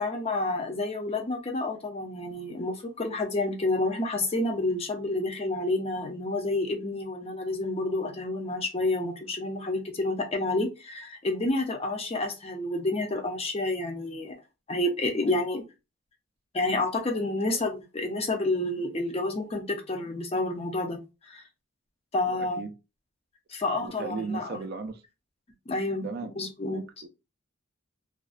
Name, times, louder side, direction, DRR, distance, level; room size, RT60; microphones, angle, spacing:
voice 1, 0.0-14.4 14.7-15.6 16.5-21.0 21.3-21.4 22.1-22.6 23.5-24.6 25.7-26.1 26.4-26.8, left 2 dB, 30° left, 0.5 m, -29 dB
voice 2, 22.3-22.7 23.8-25.0 26.0-26.3 26.7-27.1, right 4 dB, 50° right, 0.3 m, -36 dB
2.4 x 2.1 x 2.4 m
head